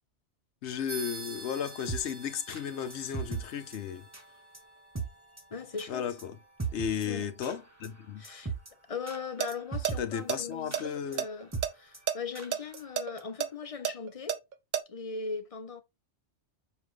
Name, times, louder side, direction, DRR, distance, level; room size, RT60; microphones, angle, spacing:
voice 1, 0.6-4.0 5.9-6.4 6.7-8.2 10.0-11.3, left 8 dB, 75° left, 0.9 m, -34 dB
sound 1, 0.9-10.8, right 3 dB, 90° right, 2.3 m, -50 dB
sound 2, 1.0-3.4 3.7-3.8 4.1-4.2 4.5-4.6 4.9-5.1 5.4-5.5 5.8-5.9 6.2-6.3 6.6-7.1 7.4-7.5 7.8-7.9 8.2-8.7 9.1-9.2 9.5-10.0 10.3-10.4 10.7-10.9 11.1-11.2 11.5-11.6 11.9-12.0 12.3-12.5 12.8-12.9 13.2-13.3, right 5 dB, 15° right, 0.9 m, -37 dB
voice 2, 5.5-6.1 7.0-7.3 8.2-8.5 8.9-14.4 14.9-15.8, left 5 dB, 40° left, 0.5 m, -39 dB
sound 3, 9.2-9.5 9.8-9.9 10.3-11.7 12.1-12.2 12.5-14.8, right 9 dB, 50° right, 0.6 m, -30 dB
6.9 x 2.5 x 3.1 m
omnidirectional pair, 1.2 m